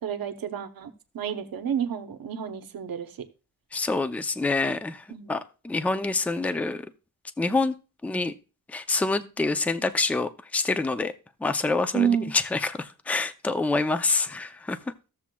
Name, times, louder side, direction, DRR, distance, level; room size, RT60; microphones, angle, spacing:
voice 1, 0.0-3.3 5.1-5.3 11.9-12.3, right 8 dB, 65° right, 0.8 m, -29 dB
voice 2, 3.7-6.8 7.4-7.7 8.0-8.3 8.7-11.1 11.4-14.8, left 3 dB, 5° left, 0.4 m, -26 dB
14.5 x 7.2 x 2.2 m
wide cardioid pair, 160°, 37 cm